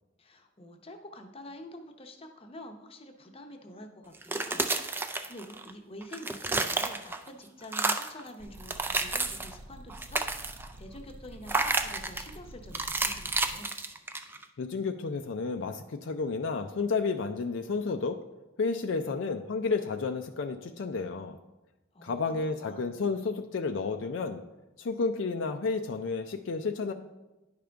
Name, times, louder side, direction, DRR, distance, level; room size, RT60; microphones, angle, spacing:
voice 1, 0.2-10.2 10.5-13.7 21.9-22.9, left 1 dB, 30° left, 4 dB, 0.7 m, -47 dB
sound 1, 4.1-5.7 6.0-7.3 7.6-8.2 8.6-9.6 9.9-10.7 11.5-12.3 12.7-14.4, right 3 dB, 10° right, 0.3 m, -31 dB
sound 2, 8.4-13.5, right 1 dB, 85° right, 0.8 m, -48 dB
voice 2, 14.6-18.2 18.6-21.4 22.0-24.4 24.8-26.9, left 4 dB, 65° left, 6 dB, 0.4 m, -31 dB
10.0 x 5.1 x 3.4 m, 1.1 s
head